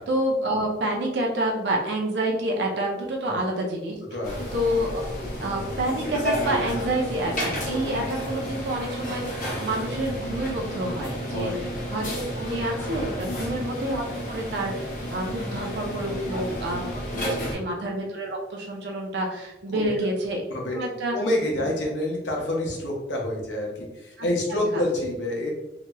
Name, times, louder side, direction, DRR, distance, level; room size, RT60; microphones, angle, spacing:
voice 1, 0.0-4.0 4.5-11.5 11.9-20.4 20.7-21.1 24.2-24.3 24.7-24.8, right 1 dB, 75° right, 0 dB, 0.6 m, -28 dB
voice 2, 4.1-4.5 11.3-11.6 13.2-13.5 16.1-16.4 16.6-16.8 17.4-17.6 19.7-19.9 20.5-25.5, left 1 dB, 90° left, -1 dB, 0.8 m, -28 dB
sound 1, 4.2-17.5, equal, 45° left, 0.7 m, -32 dB
2.9 x 2.9 x 2.2 m, 0.98 s
head